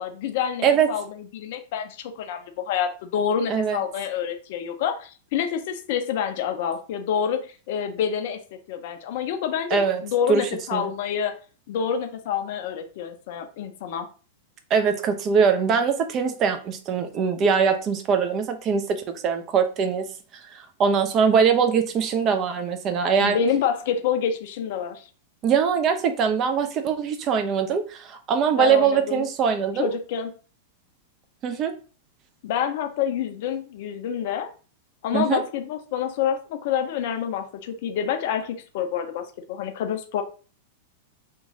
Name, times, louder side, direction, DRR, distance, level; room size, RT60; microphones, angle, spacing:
voice 1, 0.0-8.4 8.7-11.3 11.7-14.1 23.2-25.1 28.6-29.3 29.8-30.3 32.4-34.5 35.0-40.2, left 8 dB, 50° left, 6 dB, 0.4 m, -27 dB
voice 2, 9.7-10.0 10.3-10.9 14.7-20.1 20.8-23.4 25.4-30.0 31.4-31.7 35.1-35.4, right 6 dB, 30° right, 7 dB, 0.4 m, -22 dB
2.9 x 2.2 x 2.7 m, 0.37 s
figure-of-eight pair, 95°, 0 cm